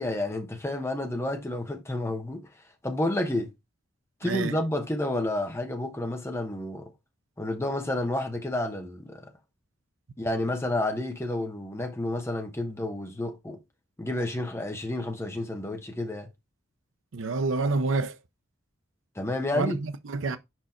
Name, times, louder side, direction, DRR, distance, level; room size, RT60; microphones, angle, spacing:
voice 1, 0.0-2.5 2.8-3.5 4.2-6.9 7.4-9.3 10.2-13.6 14.0-16.3 19.2-19.8, left 1 dB, 15° left, 1.0 m, -30 dB
voice 2, 4.2-4.6 17.1-18.2 19.5-20.4, right 3 dB, 80° right, 0.6 m, -28 dB
5.0 x 4.5 x 4.3 m
head